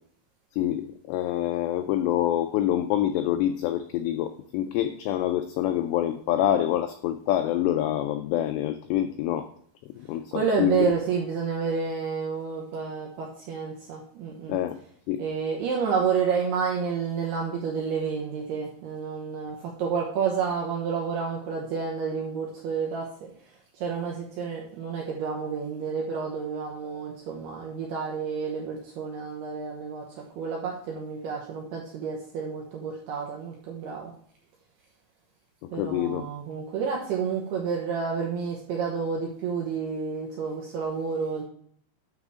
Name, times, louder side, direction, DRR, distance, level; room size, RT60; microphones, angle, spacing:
voice 1, 0.5-9.5 10.0-10.9 14.5-14.8 15.1-15.3 35.6-36.3, left 12 dB, 90° left, 8 dB, 2.4 m, -26 dB
voice 2, 10.3-14.6 15.2-23.3 23.7-34.1 35.7-41.4, right 6 dB, 75° right, -1 dB, 2.6 m, -30 dB
9.7 x 6.5 x 3.6 m, 0.63 s
omnidirectional pair, 5.5 m